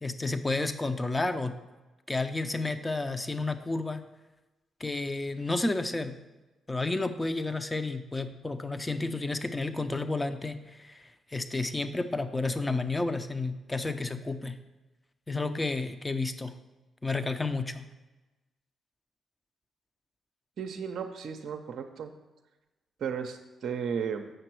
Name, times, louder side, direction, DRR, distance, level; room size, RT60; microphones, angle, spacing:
voice 1, 0.0-1.5 2.1-4.0 4.8-6.1 6.7-11.0 11.3-14.5 15.3-16.5 17.0-17.9, left 3 dB, 20° left, 10 dB, 0.7 m, -31 dB
voice 2, 20.6-22.1 23.0-24.3, right 7 dB, 65° right, 5 dB, 0.5 m, -34 dB
7.9 x 5.9 x 4.6 m, 1.1 s
supercardioid pair, 50°, 0 cm